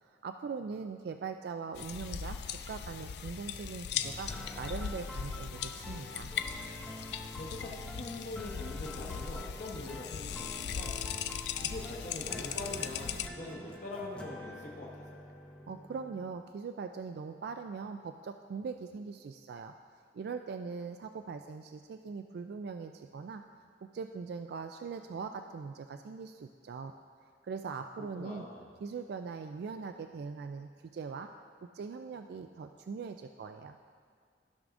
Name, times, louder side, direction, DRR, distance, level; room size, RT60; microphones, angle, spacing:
voice 1, 0.0-2.4 2.7-4.3 4.6-6.3 15.7-19.7 20.1-23.4 23.9-26.9 27.4-28.5 28.8-31.3 31.7-33.8, right 5 dB, 60° right, 7 dB, 0.3 m, -41 dB
sound 1, 1.7-13.3, left 8 dB, 65° left, 0.4 m, -39 dB
sound 2, 4.0-16.3, left 1 dB, 5° left, 0.6 m, -47 dB
voice 2, 7.4-11.0 11.6-15.2 28.1-28.7, left 2 dB, 45° left, -2 dB, 1.0 m, -43 dB
14.0 x 6.1 x 2.6 m, 2.1 s
head